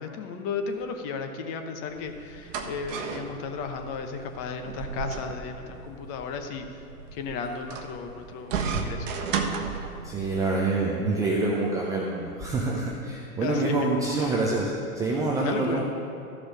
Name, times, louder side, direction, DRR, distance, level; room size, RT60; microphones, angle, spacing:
voice 1, 0.0-6.6 7.1-9.3 13.4-14.3 15.4-15.8, left 5 dB, 35° left, 6 dB, 1.0 m, -34 dB
sound 1, 1.9-10.4, right 5 dB, 55° right, 1.0 m, -34 dB
voice 2, 10.0-15.8, right 3 dB, 10° right, -3 dB, 0.4 m, -26 dB
13.5 x 5.0 x 6.1 m, 2.6 s
hypercardioid pair, 115°, 45 cm